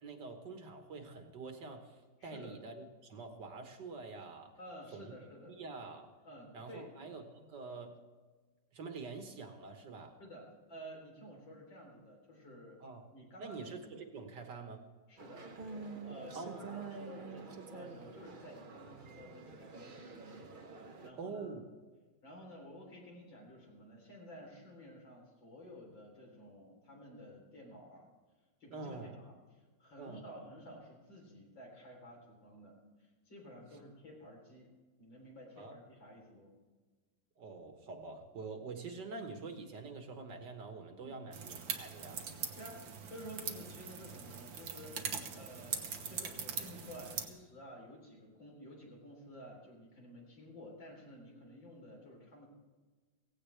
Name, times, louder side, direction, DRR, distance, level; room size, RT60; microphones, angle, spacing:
voice 1, 0.0-4.6 4.9-5.1 5.5-6.1 6.5-8.0 8.7-10.2 12.8-13.1 13.4-14.9 16.3-16.7 21.2-21.6 28.7-29.2 30.0-30.3 35.6-35.8 37.4-42.3, right 4 dB, 65° right, 5 dB, 2.0 m, -46 dB
voice 2, 2.2-2.5 4.6-5.6 6.2-6.9 10.2-12.8 13.1-13.6 15.1-15.4 16.0-20.4 21.0-21.5 22.2-28.1 28.6-29.3 29.8-34.7 35.0-36.5 41.0-41.4 42.6-52.5, equal, 75° left, -1 dB, 4.4 m, -52 dB
sound 1, 15.2-21.1, right 4 dB, 40° right, 0.7 m, -48 dB
sound 2, 41.3-47.3, right 6 dB, 80° right, 1.9 m, -42 dB
17.0 x 16.5 x 3.4 m, 1.3 s
omnidirectional pair, 2.0 m